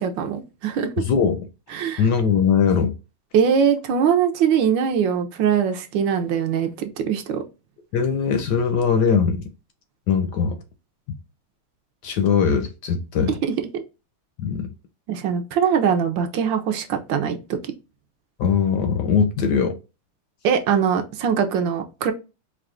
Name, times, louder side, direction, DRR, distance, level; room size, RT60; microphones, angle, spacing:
voice 1, 0.0-0.9 1.7-2.0 3.3-7.4 13.7-13.8 15.1-17.6 20.4-22.1, right 7 dB, 70° right, 1.3 m, -22 dB
voice 2, 1.0-1.5 2.0-2.9 7.9-9.4 10.1-10.6 11.1-11.2 12.0-13.3 14.4-14.7 18.4-19.7, left 6 dB, 75° left, 1.0 m, -20 dB
4.7 x 2.3 x 3.6 m
omnidirectional pair, 2.3 m